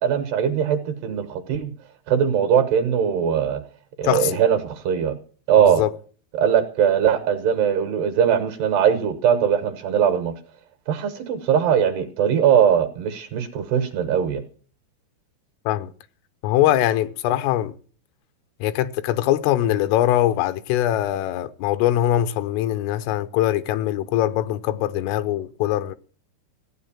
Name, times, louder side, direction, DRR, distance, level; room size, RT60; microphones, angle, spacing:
voice 1, 0.0-1.7 2.1-3.6 4.0-5.2 5.5-5.8 6.3-10.3 10.9-14.4, right 8 dB, 70° right, 2.7 m, -20 dB
voice 2, 4.0-4.4 5.7-5.9 15.7-15.9 16.4-17.7 18.6-26.0, left 13 dB, 80° left, 3.3 m, -22 dB
16.0 x 9.2 x 7.3 m
omnidirectional pair, 5.8 m